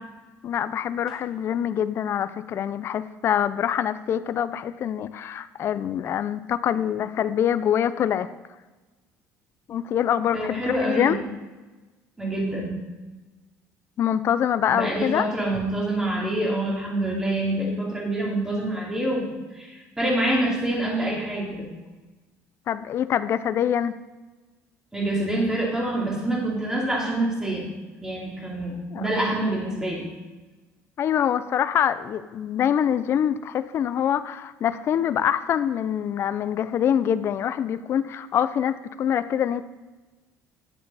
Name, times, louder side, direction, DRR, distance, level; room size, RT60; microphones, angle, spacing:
voice 1, 0.4-8.3 9.7-11.2 14.0-15.3 22.7-24.0 28.9-29.1 31.0-39.6, left 9 dB, 45° left, 12 dB, 0.5 m, -25 dB
voice 2, 10.3-11.1 12.2-12.9 14.7-21.7 24.9-27.7 28.0-30.1, right 1 dB, 10° right, -3 dB, 2.7 m, -26 dB
10.5 x 8.6 x 4.1 m, 1.2 s
cardioid pair, 125°, 6 cm